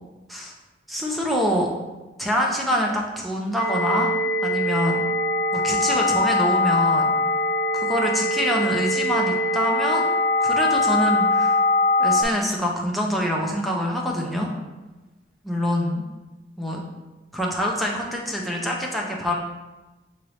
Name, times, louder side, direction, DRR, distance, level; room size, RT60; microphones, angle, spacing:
voice 1, 0.9-1.7 2.2-4.1 4.4-5.0 5.5-7.1 7.7-10.1 10.4-11.6 12.0-14.5 15.4-16.0 16.6-16.8 17.3-19.3, equal, ahead, -2 dB, 0.5 m, -25 dB
sound 1, 3.6-12.2, left 2 dB, 50° left, 0.8 m, -22 dB
5.8 x 2.7 x 3.3 m, 1.1 s
head